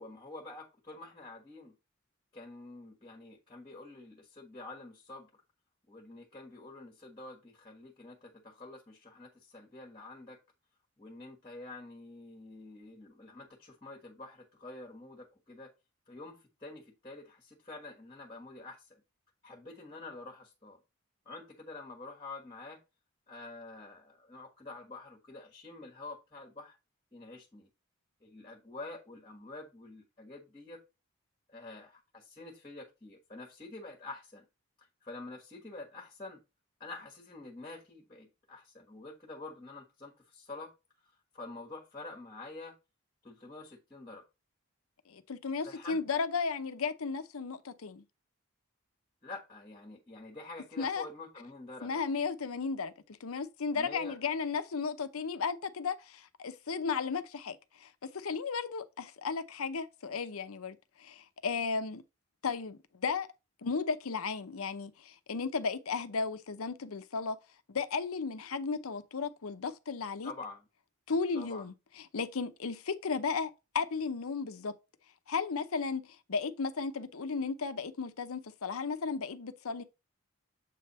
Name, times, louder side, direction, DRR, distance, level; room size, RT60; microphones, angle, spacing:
voice 1, 0.0-1.7 2.3-5.3 5.9-10.4 11.0-15.7 16.1-19.0 19.4-20.8 21.2-22.8 23.3-26.8 27.1-27.7 28.2-30.8 31.5-34.4 35.0-36.4 36.8-40.7 41.0-42.7 43.2-44.2 45.6-46.1 49.2-52.0 53.7-54.2 70.2-70.6 71.3-71.6, left 2 dB, 20° left, 1.4 m, -47 dB
voice 2, 45.1-48.0 50.8-51.1 51.8-52.9 53.2-62.0 62.4-63.3 63.6-67.4 67.7-70.3 71.1-74.7 75.3-79.8, left 5 dB, 90° left, 0.7 m, -35 dB
7.6 x 3.4 x 4.1 m
head